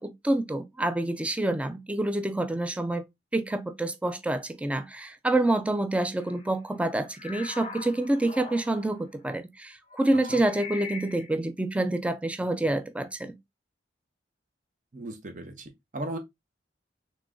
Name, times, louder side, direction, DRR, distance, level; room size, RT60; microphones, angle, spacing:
voice 1, 0.0-3.0 3.3-13.4, right 1 dB, 5° right, 0.4 m, -27 dB
sound 1, 6.2-6.5 6.8-9.0 9.9-11.4, left 4 dB, 35° left, 0.7 m, -42 dB
voice 2, 14.9-16.2, right 1 dB, 45° right, 0.8 m, -37 dB
3.6 x 3.1 x 3.6 m
head